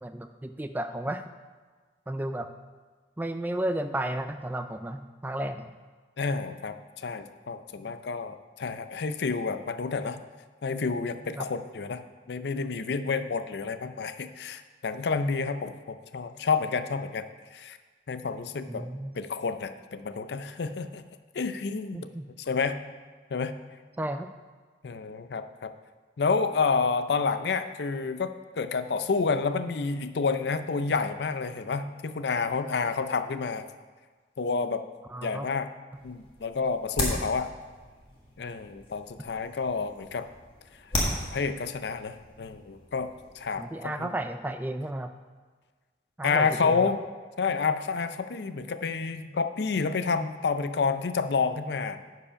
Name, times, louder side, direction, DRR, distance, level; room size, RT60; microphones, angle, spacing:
voice 1, 0.0-1.3 2.1-2.5 3.2-5.7 11.3-11.5 18.7-19.1 21.9-22.3 24.0-24.3 35.1-35.5 43.6-45.1 46.2-46.9, right 1 dB, 10° right, 8 dB, 0.3 m, -33 dB
voice 2, 6.2-10.2 10.6-12.0 12.3-17.2 17.5-17.8 18.1-18.9 19.1-21.1 21.3-22.0 22.4-22.8 23.3-23.5 24.8-25.7 26.2-33.7 34.4-34.8 35.2-35.7 36.0-37.5 38.4-40.3 41.3-44.1 46.2-47.0 47.4-52.0, left 4 dB, 70° left, 10 dB, 0.5 m, -29 dB
sound 1, 35.9-43.6, left 1 dB, 30° left, 1.6 m, -36 dB
10.0 x 4.8 x 5.7 m, 1.4 s
head